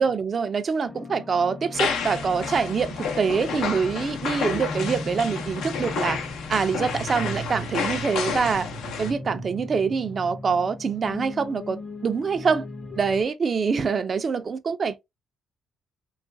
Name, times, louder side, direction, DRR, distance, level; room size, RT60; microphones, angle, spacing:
voice 1, 0.0-6.2 6.5-8.7 9.0-12.6 13.0-15.1, right 5 dB, 45° right, 0.5 m, -25 dB
sound 1, 0.9-13.2, left 2 dB, 25° left, 0.7 m, -38 dB
sound 2, 1.7-9.1, left 6 dB, 80° left, 0.6 m, -30 dB
sound 3, 6.5-10.6, right 6 dB, 90° right, 0.6 m, -39 dB
3.0 x 2.4 x 2.6 m
cardioid pair, 90°, 0 cm